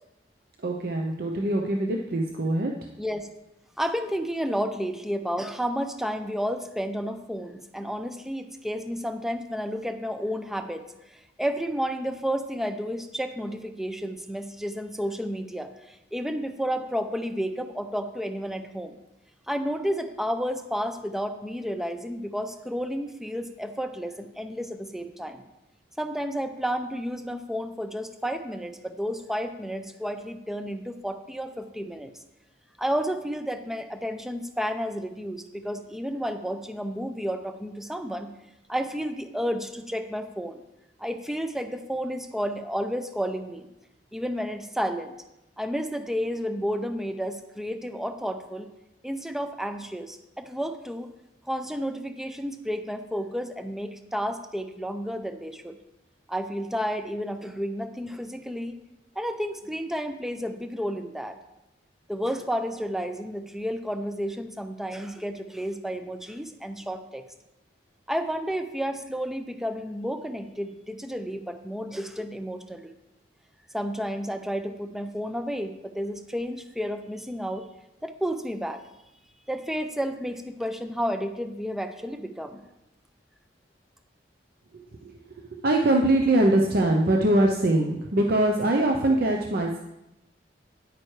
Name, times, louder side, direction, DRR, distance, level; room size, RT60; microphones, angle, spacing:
voice 1, 0.6-2.7 85.0-85.1 85.6-89.8, right 1 dB, 60° right, 2 dB, 0.7 m, -22 dB
voice 2, 3.0-3.3 3.8-10.9 11.4-19.0 19.5-25.4 26.0-32.1 32.8-38.3 38.7-40.6 41.0-43.7 44.1-45.1 45.6-48.7 49.0-51.1 51.5-55.8 56.3-58.8 59.2-61.4 62.1-67.2 68.1-72.9 73.7-77.7 78.0-78.8 79.5-82.6, equal, ahead, 8 dB, 0.5 m, -31 dB
10.0 x 8.8 x 3.2 m, 0.91 s
head